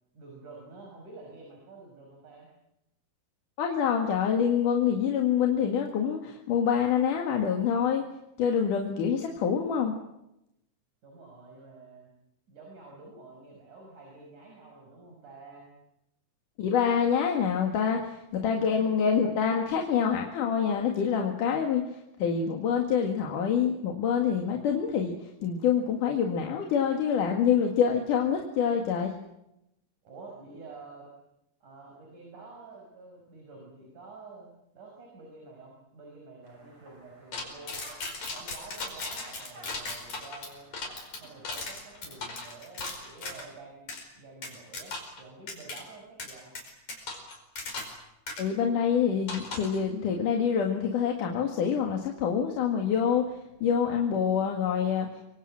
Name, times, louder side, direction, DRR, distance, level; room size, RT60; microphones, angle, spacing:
voice 1, 0.1-2.5 11.0-12.1 12.5-15.7 17.7-18.0 18.6-18.9 30.0-31.2 31.6-37.9 38.3-40.6 41.2-46.5, right 3 dB, 70° right, 0 dB, 7.0 m, -49 dB
voice 2, 3.6-8.0 8.4-9.9 16.6-29.1 48.4-55.1, left 7 dB, 80° left, 2 dB, 3.6 m, -26 dB
sound 1, 36.4-42.4, right 1 dB, 45° right, 7.2 m, -54 dB
sound 2, 37.3-43.5 43.9-44.0 44.4-45.2 45.5-45.8 46.2-48.0 48.3-48.4 49.3-49.8, left 3 dB, 60° left, 6.4 m, -37 dB
26.0 x 24.5 x 7.6 m, 0.85 s
omnidirectional pair, 3.6 m